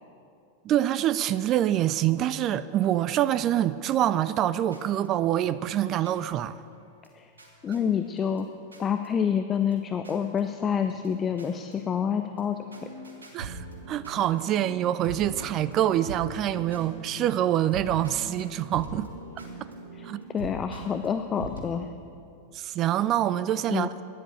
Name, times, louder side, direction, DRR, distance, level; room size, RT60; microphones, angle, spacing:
voice 1, 0.6-6.6 13.3-19.1 20.0-20.2 22.5-23.9, right 12 dB, 35° right, 16 dB, 0.4 m, -25 dB
sound 1, 4.7-9.7 10.0-10.4 10.7-21.7, right 2 dB, 70° right, 2.2 m, -43 dB
voice 2, 7.6-8.5 8.8-12.6 19.9-20.1 20.3-21.9 23.7-23.9, left 7 dB, 25° left, 8 dB, 0.5 m, -27 dB
13.0 x 10.5 x 6.9 m, 2.5 s
figure-of-eight pair, 90°, 0 cm